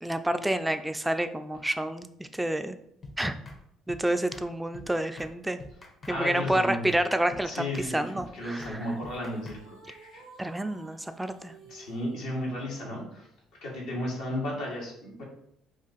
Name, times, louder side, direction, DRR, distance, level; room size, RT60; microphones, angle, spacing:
voice 1, 0.0-2.8 3.2-3.4 3.9-5.6 6.1-8.8 10.4-11.5, right 1 dB, 10° right, 9 dB, 0.3 m, -29 dB
sound 1, 3.0-3.2 3.5-3.6 3.9-4.0 4.3-4.5 4.7-4.9 5.2-5.3 5.6-6.2 6.4-6.6 6.9-7.0 7.3-7.5 7.7-7.9 8.2-8.3 8.6-8.8 9.0-9.6, left 2 dB, 35° left, 0.7 m, -45 dB
voice 2, 6.1-6.9 7.2-8.0 8.3-10.2 11.7-13.3 13.6-15.2, left 1 dB, 70° left, -3 dB, 1.0 m, -34 dB
sound 2, 8.0-12.6, right 4 dB, 65° right, 0.5 m, -53 dB
2.4 x 2.4 x 3.8 m, 0.74 s
hypercardioid pair, 60°, 0 cm